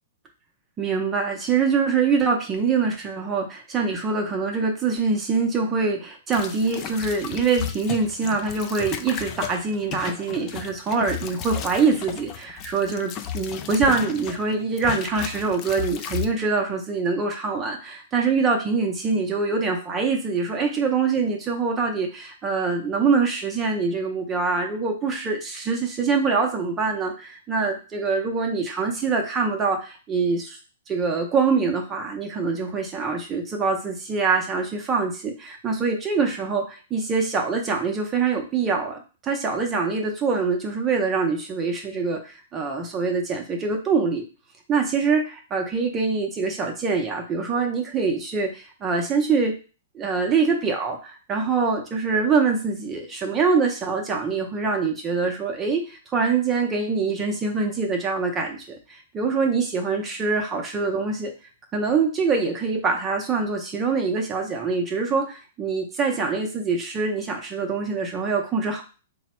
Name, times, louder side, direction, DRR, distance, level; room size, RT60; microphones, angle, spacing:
voice 1, 0.8-30.6 30.9-44.3 44.7-49.5 49.9-61.3 61.7-68.8, right 4 dB, 20° right, 1 dB, 0.6 m, -24 dB
sound 1, 6.3-14.5 14.8-16.3, left 9 dB, 30° left, 0.4 m, -34 dB
3.4 x 2.0 x 4.2 m, 0.35 s
hypercardioid pair, 145°, 0 cm